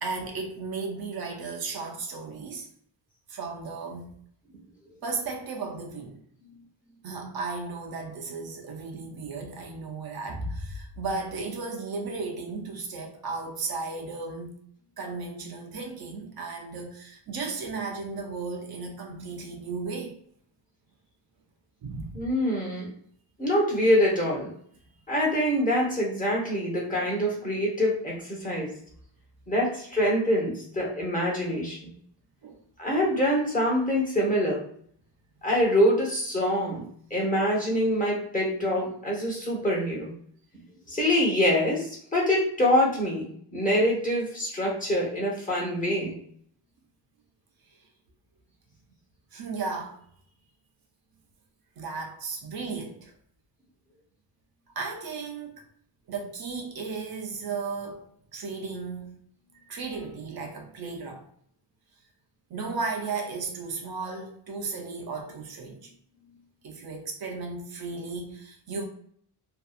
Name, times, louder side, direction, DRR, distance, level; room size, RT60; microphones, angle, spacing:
voice 1, 0.0-2.7 3.3-4.1 5.0-6.2 7.0-14.5 15.0-20.1 21.8-22.1 32.4-32.6 49.3-50.0 51.8-53.1 54.8-55.6 56.1-59.2 59.7-61.3 62.5-65.9 66.6-68.8, right 4 dB, 55° right, 0.5 m, -35 dB
voice 2, 22.1-22.9 23.4-24.5 25.1-28.7 29.5-31.9 32.8-34.6 35.4-40.1 40.9-46.2, equal, 20° left, 0.8 m, -25 dB
2.7 x 2.3 x 2.3 m
wide cardioid pair, 140°, 44 cm